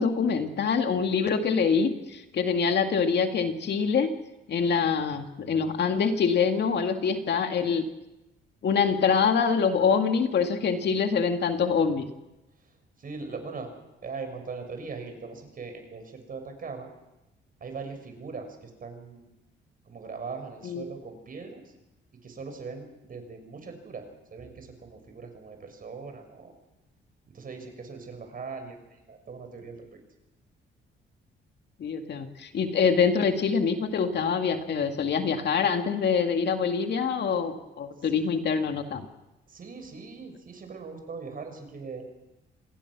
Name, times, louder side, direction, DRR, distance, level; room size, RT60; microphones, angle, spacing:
voice 1, 0.0-4.1 4.5-7.9 8.6-12.1 20.6-20.8 31.8-39.1, left 6 dB, 60° left, 5 dB, 2.4 m, -25 dB
voice 2, 13.0-13.7 14.0-16.9 17.6-19.3 19.9-21.7 22.2-26.5 27.3-29.8 38.0-38.1 39.5-42.0, right 4 dB, 45° right, 6 dB, 6.1 m, -40 dB
26.5 x 19.5 x 6.2 m, 0.97 s
cardioid pair, 90°, 20 cm